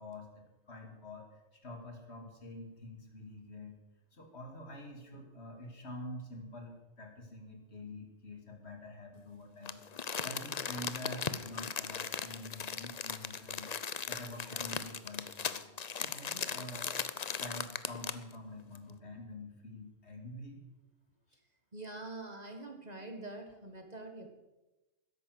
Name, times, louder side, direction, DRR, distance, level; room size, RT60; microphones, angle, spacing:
voice 1, 0.0-3.8 4.1-9.8 10.2-13.7 14.0-15.6 16.0-17.0 17.4-20.6, left 1 dB, 60° left, 3 dB, 2.8 m, -47 dB
Crumpling crinkling, 9.7-18.3 18.8-18.9, left 6 dB, 40° left, 0.7 m, -38 dB
voice 2, 21.7-24.3, right 2 dB, 35° right, 4 dB, 1.8 m, -45 dB
13.0 x 10.5 x 7.8 m, 1.0 s
omnidirectional pair, 1.3 m